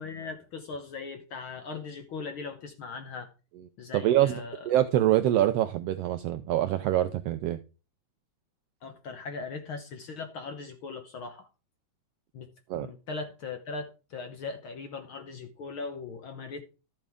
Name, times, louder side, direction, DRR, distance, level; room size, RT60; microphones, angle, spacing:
voice 1, 0.0-3.3 3.8-4.7 8.8-11.5 12.3-12.5 12.7-16.6, left 4 dB, 65° left, 1.4 m, -39 dB
voice 2, 3.9-7.6 12.7-12.9, right 13 dB, 80° right, 1.4 m, -25 dB
13.0 x 7.3 x 3.5 m
omnidirectional pair, 3.4 m